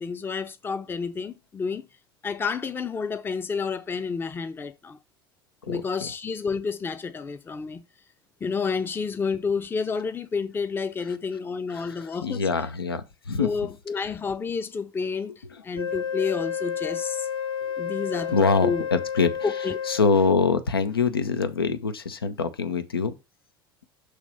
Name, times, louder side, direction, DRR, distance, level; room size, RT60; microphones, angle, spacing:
voice 1, 0.0-1.9 2.2-5.0 5.7-7.8 8.4-12.4 13.4-17.3 17.8-18.4 18.6-18.9 19.4-19.7, left 5 dB, 15° left, 0.6 m, -30 dB
voice 2, 5.6-6.1 11.7-13.5 15.5-15.6 17.6-17.9 18.3-19.3 19.8-23.1, left 4 dB, 80° left, 0.7 m, -25 dB
Wind instrument woodwind instrument, 15.7-20.1, left 8 dB, 55° left, 3.5 m, -31 dB
6.4 x 3.2 x 5.4 m
figure-of-eight pair, 75°, 12 cm